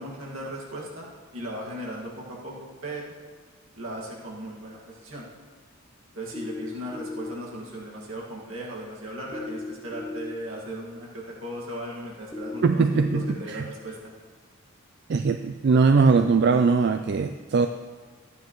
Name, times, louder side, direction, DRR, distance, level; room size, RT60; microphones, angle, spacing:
voice 1, 0.0-2.5 2.8-3.1 3.7-5.3 6.1-14.1, right 1 dB, 65° right, -4 dB, 1.9 m, -37 dB
sound 1, 6.3-7.3 9.3-10.3 12.3-13.3, left 3 dB, ahead, 0.6 m, -35 dB
voice 2, 12.6-13.6 15.1-17.7, right 4 dB, 50° right, 7 dB, 0.3 m, -21 dB
14.0 x 9.3 x 3.1 m, 1.4 s
head